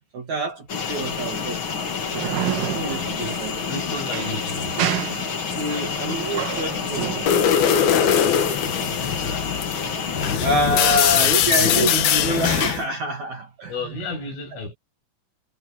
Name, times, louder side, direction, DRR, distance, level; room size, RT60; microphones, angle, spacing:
voice 1, 0.1-1.6 2.4-3.5 5.5-7.1 10.4-13.7, right 1 dB, 45° right, 3.0 m, -26 dB
sound 1, 0.7-10.4, left 6 dB, 40° left, 1.8 m, -29 dB
sound 2, 2.0-8.8, right 11 dB, 80° right, 4.9 m, -31 dB
voice 2, 2.7-3.4 3.7-4.9 8.0-9.6 10.1-11.9 13.7-14.7, left 3 dB, 75° left, 9.9 m, -34 dB
sound 3, 7.3-12.9, left 9 dB, 60° left, 3.1 m, -21 dB
omnidirectional pair, 5.6 m